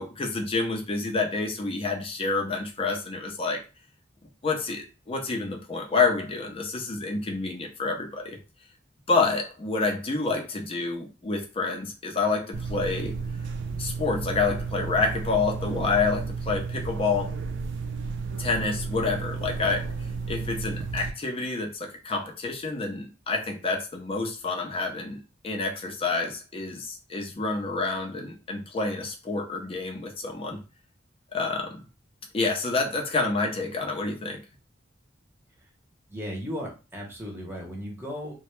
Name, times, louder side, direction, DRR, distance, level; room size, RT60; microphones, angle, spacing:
voice 1, 0.0-3.6 4.4-8.4 9.1-13.1 13.8-17.3 18.4-19.9 20.3-30.6 31.3-31.8 32.3-34.4, left 3 dB, 30° left, 1 dB, 0.5 m, -28 dB
sound 1, 12.5-21.1, right 4 dB, 65° right, 0.4 m, -32 dB
voice 2, 36.1-38.4, equal, 10° right, -1 dB, 0.7 m, -36 dB
2.2 x 2.0 x 3.0 m, 0.31 s
head